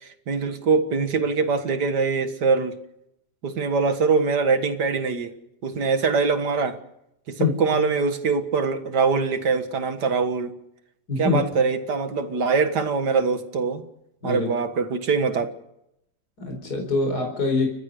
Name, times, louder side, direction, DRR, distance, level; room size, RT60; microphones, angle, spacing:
voice 1, 0.0-2.8 3.4-5.3 5.6-6.8 7.3-10.6 11.2-13.8 14.2-15.5, right 4 dB, 70° right, 8 dB, 2.3 m, -23 dB
voice 2, 11.1-11.4 14.2-14.5 16.4-17.7, left 3 dB, 60° left, 3 dB, 5.0 m, -24 dB
30.0 x 15.0 x 6.6 m, 0.81 s
omnidirectional pair, 1.8 m